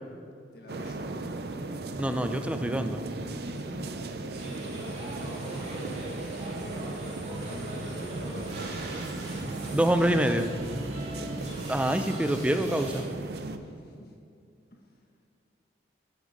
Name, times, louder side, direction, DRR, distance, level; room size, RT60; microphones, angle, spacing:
voice 1, 0.5-1.4 3.4-4.7 5.1-6.0 7.3-10.3 13.5-14.2 14.7-15.0, left 1 dB, 55° left, 1 dB, 1.4 m, -47 dB
sound 1, 0.7-13.6, right 2 dB, 60° right, 0.6 m, -36 dB
voice 2, 2.0-3.0 9.7-10.5 11.7-13.0, right 1 dB, 5° right, 7 dB, 0.4 m, -26 dB
sound 2, 4.3-13.0, right 1 dB, 40° right, 2.1 m, -42 dB
sound 3, 5.1-10.2, equal, 10° left, 1.6 m, -46 dB
9.6 x 7.8 x 5.0 m, 2.4 s
head